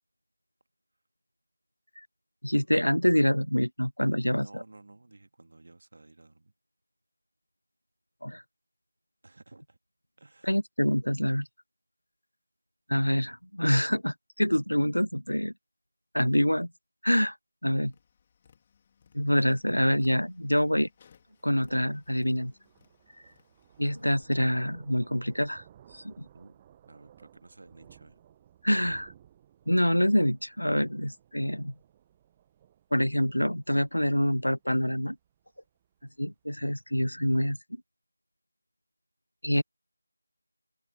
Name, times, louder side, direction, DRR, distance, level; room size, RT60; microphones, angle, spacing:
voice 1, 2.4-4.5 8.2-8.4 10.4-11.5 12.9-15.5 16.1-16.7 17.0-17.4 17.6-17.9 19.1-20.9 21.4-22.5 23.8-25.6 25.9-26.3 28.6-29.1 29.7-31.7 32.9-35.2 36.2-37.6 39.4-39.6, equal, 85° left, 0.6 m, -26 dB
voice 2, 4.2-6.5 9.2-9.8 10.2-10.6 26.3-28.2, right 2 dB, 45° right, 2.5 m, -54 dB
Tap, 17.8-24.2, left 7 dB, 15° left, 4.6 m, -63 dB
Thunder, 19.9-36.8, right 10 dB, 10° right, 1.1 m, -59 dB
figure-of-eight pair, 170°, 0 cm